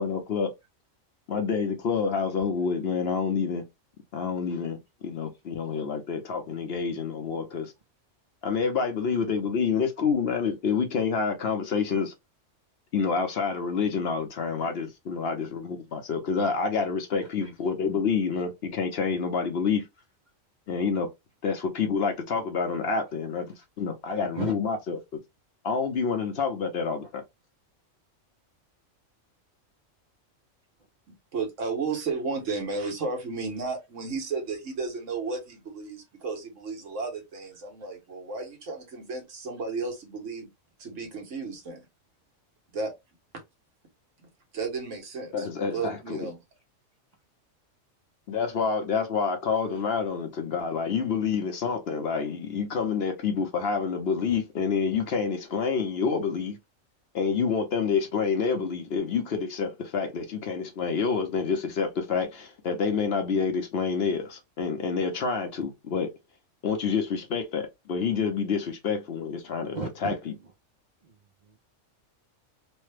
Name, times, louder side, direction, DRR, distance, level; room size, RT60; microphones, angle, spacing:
voice 1, 0.0-0.5 1.3-3.6 4.1-7.7 8.4-12.1 12.9-19.9 20.7-21.1 21.4-25.2 25.6-27.2 45.3-46.3 48.3-56.6 57.1-66.1 66.6-69.8 70.0-70.1, left 5 dB, 60° left, 0.8 m, -28 dB
voice 2, 17.2-17.5 24.0-24.5 27.0-27.1 49.5-49.9 68.5-68.6 69.7-70.1 70.4-70.5 71.0-71.6, right 4 dB, 50° right, 0.6 m, -39 dB
voice 3, 31.3-40.5 40.8-41.9 42.7-42.9 44.2-44.3 44.5-46.4, right 4 dB, 70° right, 1.4 m, -33 dB
3.2 x 2.1 x 3.2 m
omnidirectional pair, 1.3 m